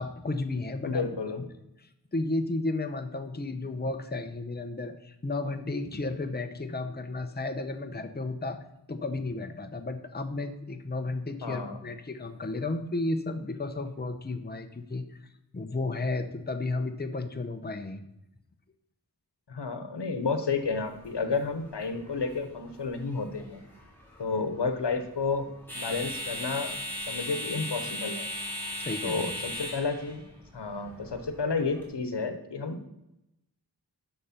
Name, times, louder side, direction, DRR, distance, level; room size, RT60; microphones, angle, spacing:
voice 1, 0.0-1.1 1.8-8.6 8.9-15.3 15.5-18.0 28.8-29.4, left 2 dB, 25° left, 7 dB, 0.8 m, -33 dB
voice 2, 0.8-1.4 11.4-11.8 19.5-23.6 24.2-25.5 25.7-26.8 27.1-28.3 29.0-30.2 30.5-32.8, left 4 dB, 80° left, 8 dB, 1.1 m, -31 dB
sound 1, 20.5-31.8, left 1 dB, 5° left, 3.8 m, -39 dB
10.5 x 6.7 x 4.3 m, 0.89 s
wide cardioid pair, 60°, 41 cm